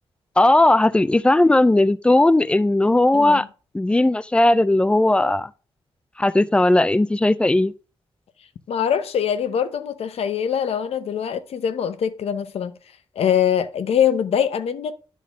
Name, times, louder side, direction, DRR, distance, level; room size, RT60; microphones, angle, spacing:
voice 1, 0.4-3.5 3.7-5.5 6.2-7.7, left 2 dB, 10° left, 0.3 m, -17 dB
voice 2, 3.1-3.5 8.7-12.7 13.2-14.9, left 8 dB, 85° left, 0.7 m, -23 dB
10.0 x 3.7 x 5.0 m
wide cardioid pair, 140°, 10 cm